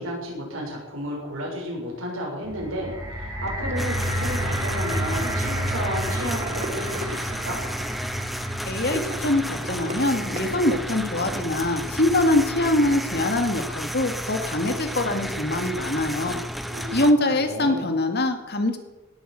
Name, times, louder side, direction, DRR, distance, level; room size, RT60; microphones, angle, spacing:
voice 1, 0.0-7.6 16.7-17.8, equal, 80° right, -1 dB, 6.7 m, -32 dB
sound 1, 2.4-12.7 13.4-13.5, right 1 dB, 15° right, 3.5 m, -31 dB
sound 2, 3.4-12.0, right 1 dB, 35° right, 1.7 m, -38 dB
sound 3, 3.8-17.1, equal, ahead, 0.7 m, -32 dB
voice 2, 8.7-16.4 16.9-18.8, left 1 dB, 50° left, 6 dB, 2.1 m, -23 dB
18.0 x 8.8 x 7.7 m, 1.1 s
head